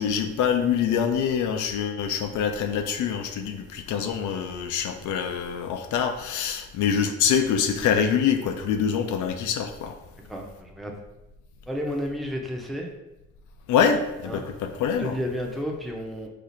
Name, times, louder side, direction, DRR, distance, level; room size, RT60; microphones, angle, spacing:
voice 1, 0.0-10.0 13.7-15.2, left 7 dB, 75° left, 6 dB, 0.4 m, -25 dB
voice 2, 10.3-10.9 11.7-12.9 14.2-14.4 15.0-16.3, equal, ahead, 0 dB, 0.6 m, -31 dB
4.4 x 2.4 x 2.6 m, 0.96 s
cardioid pair, 90°, 30 cm